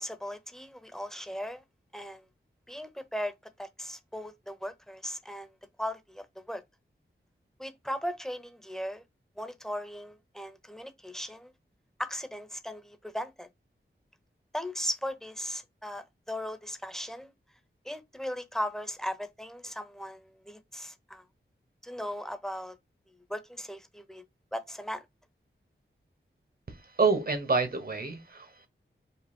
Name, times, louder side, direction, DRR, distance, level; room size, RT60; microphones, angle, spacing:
voice 1, 0.0-1.6 1.9-2.3 2.7-5.5 5.8-6.6 7.6-9.0 9.4-11.5 12.0-13.5 14.5-17.3 17.8-21.2 21.8-22.7 23.3-24.2 24.5-25.0, equal, ahead, 0.8 m, -37 dB
voice 2, 27.0-28.7, right 4 dB, 50° right, 1.2 m, -27 dB
5.3 x 2.1 x 4.3 m
wide cardioid pair, 90°, 20 cm